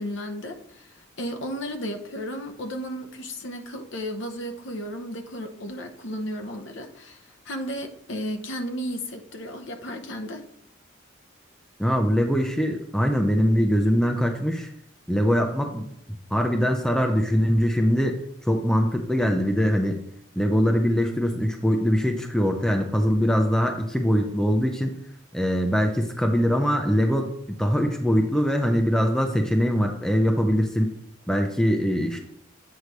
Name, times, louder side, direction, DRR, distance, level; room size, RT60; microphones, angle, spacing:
voice 1, 0.0-10.4, equal, 65° left, 4 dB, 0.9 m, -34 dB
voice 2, 11.8-14.7 15.1-15.9 16.3-18.2 18.5-20.0 20.3-24.9 25.3-30.9 31.3-32.2, equal, 5° left, 3 dB, 0.5 m, -22 dB
8.1 x 3.2 x 5.2 m, 0.69 s
head